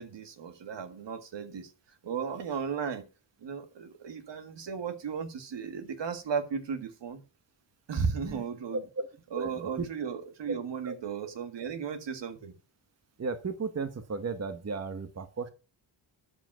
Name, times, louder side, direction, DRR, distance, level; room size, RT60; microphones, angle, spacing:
voice 1, 0.0-1.7 2.0-3.1 3.4-7.2 7.9-8.8 9.3-12.5, right 6 dB, 65° right, 1.8 m, -35 dB
voice 2, 9.3-9.8 10.8-10.9 13.2-15.5, right 4 dB, 35° right, 1.1 m, -35 dB
12.5 x 5.2 x 5.9 m
cardioid pair, 80°, 46 cm